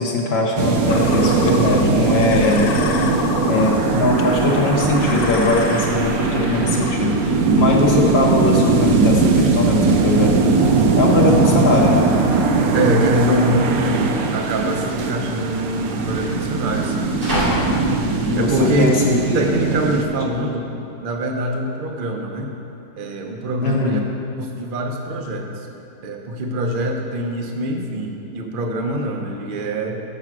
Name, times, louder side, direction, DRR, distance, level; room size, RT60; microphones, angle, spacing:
voice 1, 0.0-2.7 3.5-10.7 11.0-12.1 18.3-19.4 23.6-24.0, left 2 dB, 55° left, -3 dB, 0.7 m, -20 dB
sound 1, 0.6-20.0, right 4 dB, 65° right, 1.0 m, -19 dB
sound 2, 0.9-7.0, left 7 dB, 80° left, 1.2 m, -30 dB
sound 3, 9.8-19.8, equal, 90° right, 2.9 m, -31 dB
voice 2, 12.7-17.1 18.4-18.9 19.3-20.7 21.0-22.5 23.0-24.0 24.4-25.5 26.0-30.0, right 1 dB, 50° right, 2 dB, 0.6 m, -24 dB
7.7 x 6.6 x 6.0 m, 2.7 s
omnidirectional pair, 1.9 m